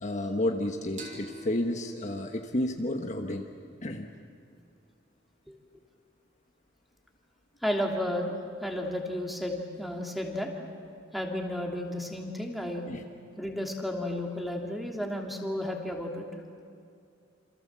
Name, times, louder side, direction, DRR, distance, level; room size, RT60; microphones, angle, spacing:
voice 1, 0.0-3.4 3.8-4.1 12.9-13.0, left 1 dB, 35° left, 3 dB, 1.3 m, -31 dB
sound 1, 1.0-4.3, right 1 dB, 40° right, 4.5 m, -48 dB
voice 2, 7.6-8.3 8.6-10.5 11.1-12.9 13.4-16.3, left 1 dB, ahead, 0 dB, 2.9 m, -32 dB
28.5 x 27.5 x 7.5 m, 2.4 s
head